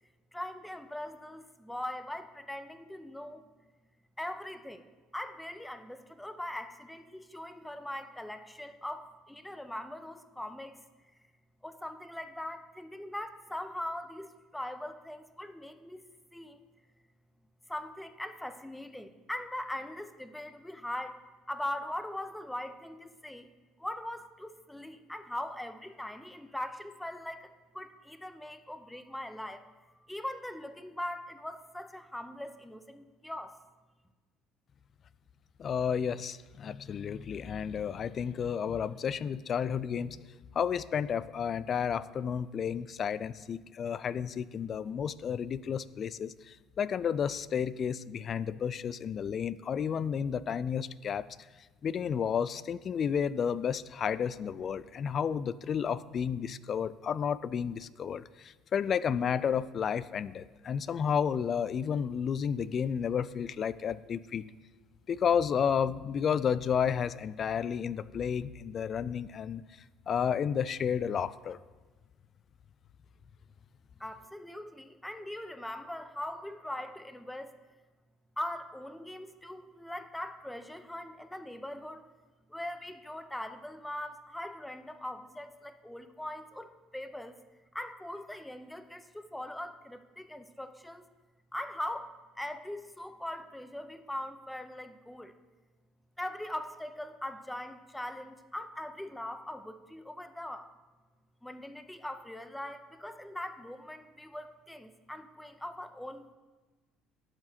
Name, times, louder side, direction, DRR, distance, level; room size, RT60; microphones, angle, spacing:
voice 1, 0.3-3.4 4.2-4.8 5.1-10.8 11.6-16.6 17.7-23.5 23.8-33.6 74.0-77.5 78.4-82.0 82.5-87.3 87.7-91.1 91.5-95.4 96.2-100.7 101.4-106.3, left 1 dB, 5° left, 10 dB, 0.8 m, -41 dB
voice 2, 35.6-40.2 40.6-51.3 51.8-64.4 65.1-69.6 70.1-71.6, left 7 dB, 45° left, 17 dB, 0.3 m, -31 dB
11.5 x 7.5 x 2.9 m, 1.3 s
hypercardioid pair, 60°, 0 cm